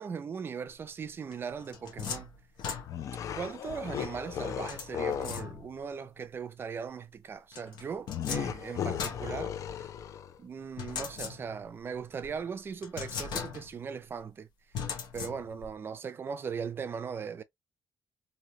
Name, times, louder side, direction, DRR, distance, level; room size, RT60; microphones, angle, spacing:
voice 1, 0.0-2.3 3.3-9.5 9.8-9.9 10.4-14.5 15.1-17.4, right 6 dB, 30° right, 0.4 m, -39 dB
sound 1, 1.3-3.3 4.7-5.9 7.5-10.0 10.8-11.8 12.2-12.3 12.8-13.9 14.7-15.7, left 6 dB, 70° left, 0.9 m, -39 dB
sound 2, 2.9-5.5 8.1-10.4, left 9 dB, 45° left, 0.4 m, -36 dB
3.1 x 2.7 x 2.7 m
cardioid pair, 165°, 8 cm